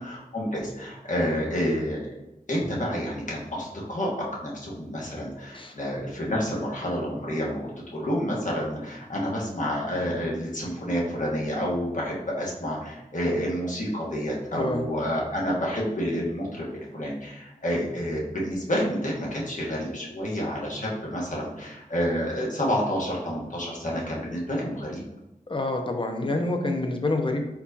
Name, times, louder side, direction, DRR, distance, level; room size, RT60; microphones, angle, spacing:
voice 1, 0.0-2.0 2.5-7.6 7.9-25.0, equal, 60° left, -4 dB, 1.3 m, -29 dB
voice 2, 14.5-14.8 25.5-27.4, left 2 dB, 35° left, 4 dB, 0.7 m, -27 dB
4.4 x 4.1 x 2.8 m, 0.93 s
wide cardioid pair, 70°, 15 cm